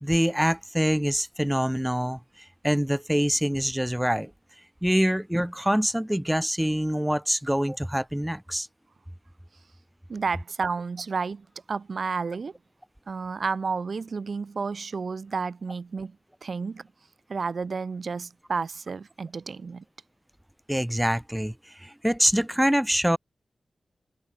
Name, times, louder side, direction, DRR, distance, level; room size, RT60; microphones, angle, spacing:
voice 1, 0.0-4.3 4.8-8.7 20.7-23.2, equal, 5° right, 0.6 m, -25 dB
voice 2, 10.1-12.5 13.1-16.9 17.3-19.8, right 5 dB, 60° right, 0.8 m, -31 dB
wide cardioid pair, 110°, 0 cm